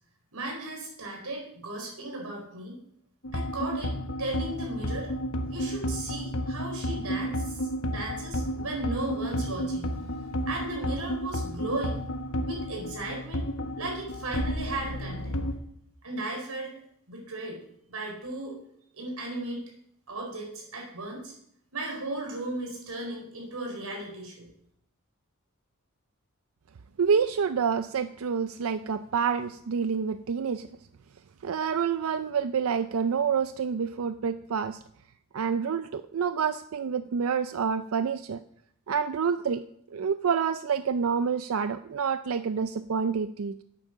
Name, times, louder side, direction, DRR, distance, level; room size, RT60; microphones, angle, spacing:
voice 1, 0.3-2.8 3.3-5.1 5.5-10.0 10.5-12.0 12.5-13.4 13.8-15.4 16.0-16.7 17.1-17.6 17.9-18.5 18.9-19.6 20.1-21.3 21.7-24.5, right 2 dB, 80° right, 0 dB, 4.4 m, -35 dB
sound 1, 3.2-15.5, equal, 75° left, 1.2 m, -32 dB
voice 2, 27.0-30.7 31.4-34.8 35.3-38.4 38.9-39.6 39.9-43.6, right 6 dB, 65° right, 11 dB, 0.4 m, -28 dB
9.0 x 8.5 x 6.2 m, 0.69 s
head